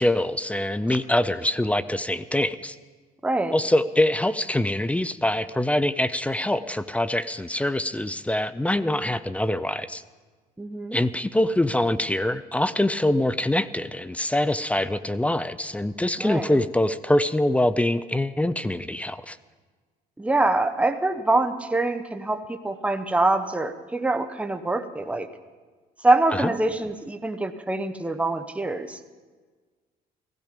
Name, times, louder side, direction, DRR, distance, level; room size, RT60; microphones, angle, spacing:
voice 1, 0.0-2.8 3.5-10.0 10.9-19.4 26.3-26.5, left 1 dB, 10° left, 15 dB, 0.4 m, -24 dB
voice 2, 3.2-3.5 10.6-11.0 16.2-16.6 20.2-25.3 26.0-29.0, right 2 dB, 5° right, 8 dB, 0.9 m, -24 dB
16.0 x 15.5 x 5.2 m, 1.4 s
cardioid pair, 110°, 17 cm